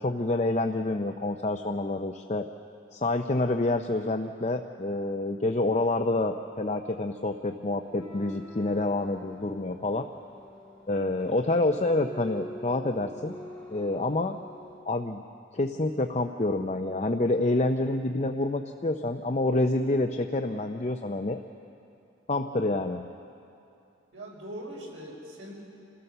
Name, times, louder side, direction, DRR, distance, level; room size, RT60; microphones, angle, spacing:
voice 1, 0.0-2.5 2.9-10.1 10.9-13.4 13.7-14.4 14.9-15.2 15.5-21.4 22.3-23.0, left 2 dB, 35° left, 5 dB, 0.6 m, -27 dB
sound 1, 7.8-14.8, left 1 dB, 5° left, 5.2 m, -46 dB
voice 2, 24.1-25.6, right 1 dB, 90° right, -3 dB, 5.8 m, -41 dB
27.5 x 16.5 x 6.8 m, 2.7 s
head